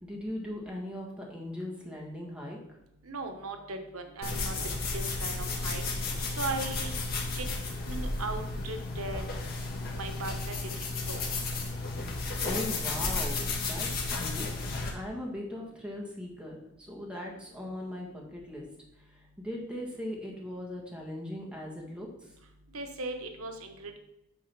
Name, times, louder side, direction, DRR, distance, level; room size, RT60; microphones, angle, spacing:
voice 1, 0.0-2.6 12.4-14.5 14.9-18.6 19.4-22.3, left 1 dB, 5° right, -2 dB, 1.6 m, -39 dB
voice 2, 3.1-4.5 4.9-5.8 6.4-6.9 7.3-7.5 7.9-9.2 9.9-10.5 11.1-11.2 22.7-24.0, right 3 dB, 85° right, 6 dB, 1.0 m, -37 dB
sound 1, 4.2-14.9, left 3 dB, 45° left, 1.5 m, -33 dB
8.4 x 4.0 x 5.9 m, 0.88 s
head